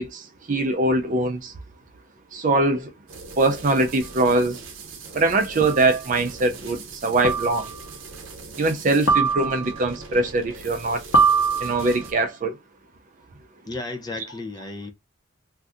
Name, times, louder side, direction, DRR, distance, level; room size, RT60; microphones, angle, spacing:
voice 1, 0.0-1.5 2.3-2.9 3.4-4.6 5.1-7.7 8.6-11.0 11.6-12.5, right 2 dB, 40° right, 0.5 m, -22 dB
sound 1, 3.1-12.1, right 3 dB, 75° right, 0.7 m, -41 dB
sound 2, 4.0-4.1 5.6-6.0 7.2-7.8 9.1-9.8 11.1-12.1, right 4 dB, 80° left, 0.8 m, -22 dB
voice 2, 13.7-14.9, left 2 dB, 20° left, 0.5 m, -33 dB
2.6 x 2.4 x 3.4 m
head